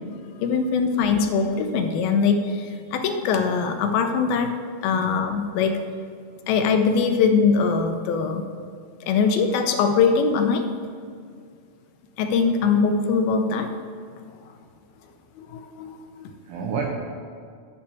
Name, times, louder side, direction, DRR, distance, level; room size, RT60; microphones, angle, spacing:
voice 1, 0.4-4.5 4.8-5.9 6.5-8.4 9.0-10.7 12.2-13.7 15.4-16.3, left 5 dB, 75° left, 6 dB, 2.4 m, -22 dB
voice 2, 4.9-5.4 9.0-9.2 16.5-16.9, right 5 dB, 70° right, 0 dB, 2.0 m, -32 dB
10.5 x 5.9 x 8.3 m, 2.2 s
omnidirectional pair, 4.7 m